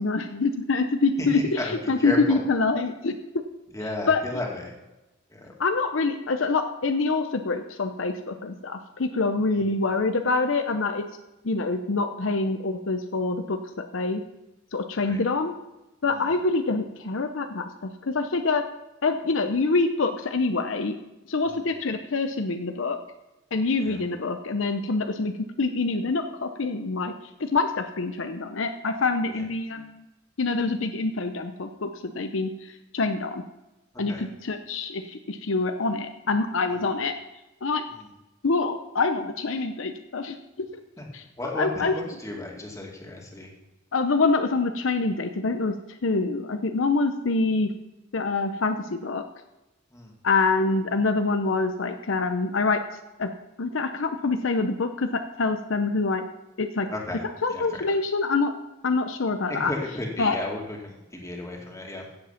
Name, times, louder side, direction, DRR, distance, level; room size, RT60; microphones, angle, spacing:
voice 1, 0.0-3.2 4.1-4.4 5.6-11.1 11.4-14.2 14.7-15.5 16.0-18.6 19.0-21.0 21.3-23.0 23.5-27.1 27.4-30.0 30.4-33.4 34.0-37.1 37.6-37.8 38.4-40.7 41.1-41.2 41.5-41.9 43.9-45.7 46.0-47.7 48.1-49.2 50.2-52.8 53.2-53.3 53.6-56.2 56.6-56.9 57.4-58.5 58.8-59.7 60.2-60.4, left 3 dB, 70° left, 7 dB, 0.7 m, -25 dB
voice 2, 1.2-1.7 2.0-2.4 3.7-4.7 5.3-5.5 15.0-15.2 16.1-16.3 21.5-21.7 23.8-24.0 29.3-29.4 34.1-34.2 37.9-38.1 41.0-41.1 41.4-43.5 49.9-50.1 56.9-57.2 57.5-57.8 59.5-62.0, left 1 dB, 15° left, 0 dB, 2.3 m, -34 dB
16.0 x 7.7 x 5.8 m, 1.0 s
head